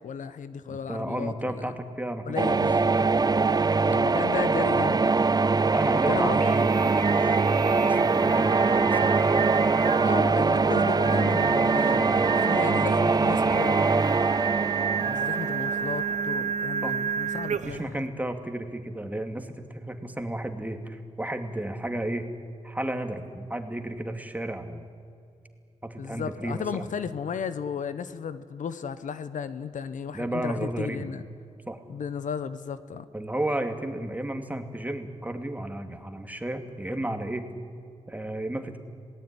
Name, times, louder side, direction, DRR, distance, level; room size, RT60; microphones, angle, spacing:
voice 1, 0.0-1.7 2.3-3.0 3.8-5.3 6.1-6.7 10.0-14.0 15.0-18.0 26.0-31.2 31.9-33.1, left 7 dB, 85° left, 13 dB, 1.1 m, -34 dB
voice 2, 0.7-2.6 5.7-7.4 7.8-9.4 16.8-17.0 17.5-22.3 22.6-24.8 25.8-26.9 30.1-31.1 31.7-31.8 33.1-37.5 38.1-38.8, right 1 dB, 10° right, 6 dB, 2.6 m, -33 dB
sound 1, 2.4-16.2, right 4 dB, 30° right, 0.7 m, -23 dB
Singing, 6.2-17.9, right 7 dB, 70° right, 1.0 m, -31 dB
26.5 x 18.5 x 10.0 m, 2.4 s
cardioid pair, 70°, 13 cm